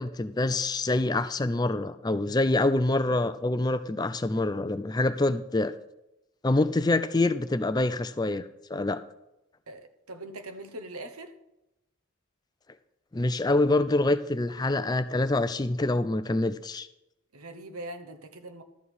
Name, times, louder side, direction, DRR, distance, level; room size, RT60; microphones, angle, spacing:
voice 1, 0.0-5.7 6.4-9.0 13.1-16.9, left 2 dB, 20° left, 12 dB, 0.4 m, -26 dB
voice 2, 9.7-11.3 17.3-18.6, right 1 dB, 90° right, 7 dB, 1.2 m, -42 dB
12.5 x 4.6 x 8.4 m, 0.90 s
head